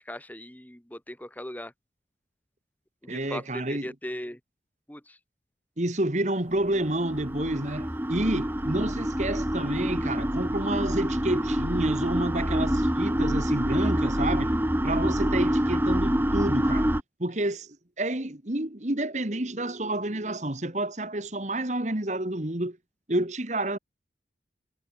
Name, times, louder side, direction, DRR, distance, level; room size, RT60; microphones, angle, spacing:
voice 1, 0.0-1.7 3.0-4.4 4.9-5.2, left 1 dB, 10° left, 2.6 m, -39 dB
voice 2, 3.1-3.9 5.8-14.6 14.8-16.9 17.2-22.8 23.1-23.8, right 1 dB, 40° right, 1.8 m, -29 dB
sound 1, 6.7-17.0, equal, 10° right, 2.3 m, -26 dB
head